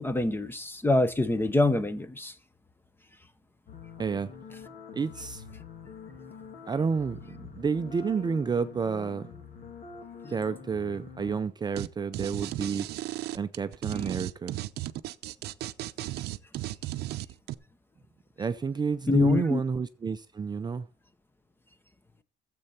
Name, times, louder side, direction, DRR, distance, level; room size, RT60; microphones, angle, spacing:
voice 1, 0.0-2.3 19.1-19.6, left 2 dB, 15° left, 0.9 m, -25 dB
sound 1, 3.7-11.4, left 6 dB, 60° left, 2.3 m, -46 dB
voice 2, 4.0-4.3 4.9-5.4 6.7-9.3 10.3-12.9 13.3-14.6 18.4-20.9, right 5 dB, 25° right, 0.5 m, -30 dB
sound 2, 11.8-11.9 12.1-17.5, right 16 dB, 75° right, 0.6 m, -35 dB
13.5 x 7.7 x 4.3 m
cardioid pair, 110°, 17 cm